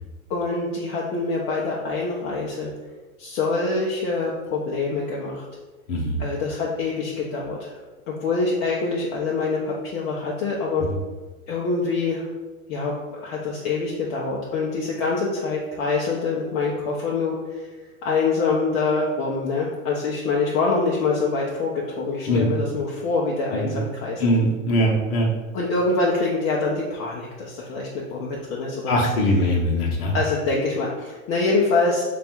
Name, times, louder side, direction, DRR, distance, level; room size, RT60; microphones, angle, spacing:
voice 1, 0.3-2.7 3.2-5.4 6.2-7.8 8.1-10.9 11.5-12.3 12.7-17.7 18.0-24.3 25.5-29.0 30.1-32.0, left 3 dB, 25° left, -3 dB, 0.4 m, -25 dB
voice 2, 24.2-25.3 28.9-30.2, equal, 45° left, -1 dB, 0.7 m, -21 dB
3.3 x 2.3 x 4.2 m, 1.2 s
hypercardioid pair, 105°, 41 cm